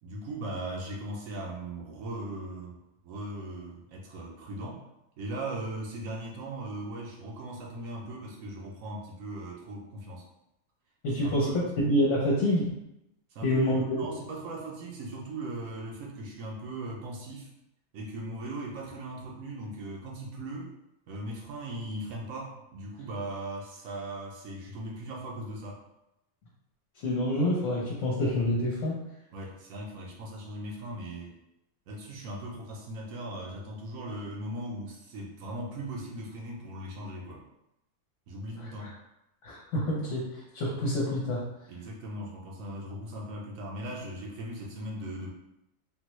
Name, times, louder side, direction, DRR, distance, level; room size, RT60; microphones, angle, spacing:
voice 1, 0.0-2.8 3.0-4.8 5.2-10.2 11.2-11.7 13.3-17.5 17.9-20.7 21.1-25.8 29.3-31.3 31.9-37.4 38.3-39.0 41.7-45.3, right 1 dB, 85° right, -2 dB, 1.1 m, -39 dB
voice 2, 11.0-11.5 11.8-12.7 13.4-14.0 27.0-29.0 38.6-38.9 39.4-41.4, left 1 dB, 70° left, -4 dB, 1.0 m, -27 dB
3.7 x 2.1 x 3.0 m, 0.87 s
omnidirectional pair, 1.4 m